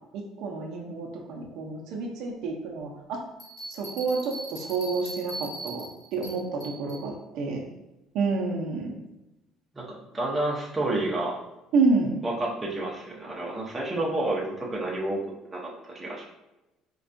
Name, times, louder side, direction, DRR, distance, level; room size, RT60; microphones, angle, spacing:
voice 1, 0.1-3.2 3.7-5.9 6.1-7.6 8.1-8.9 11.7-12.1, right 4 dB, 55° right, 1 dB, 0.5 m, -28 dB
Bell, 3.4-7.1, right 1 dB, 40° left, 1.1 m, -40 dB
voice 2, 9.7-11.3 12.2-15.2 15.5-16.3, right 2 dB, 10° right, -4 dB, 0.6 m, -30 dB
4.3 x 2.3 x 2.5 m, 0.98 s
cardioid pair, 175°, 0 cm